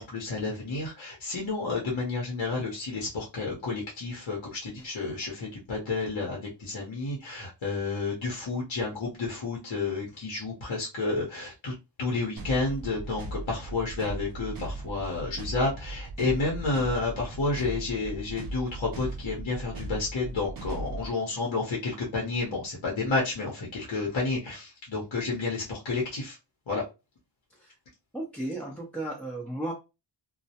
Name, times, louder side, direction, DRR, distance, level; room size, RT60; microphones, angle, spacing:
voice 1, 0.0-11.7 12.0-26.4 26.7-26.8, left 3 dB, 75° left, -2 dB, 0.9 m, -30 dB
sound 1, 12.4-21.1, right 2 dB, 50° right, 0.6 m, -38 dB
voice 2, 28.1-29.7, right 1 dB, 5° left, -3 dB, 0.6 m, -34 dB
2.2 x 2.0 x 2.7 m, 0.27 s
cardioid pair, 50°, 46 cm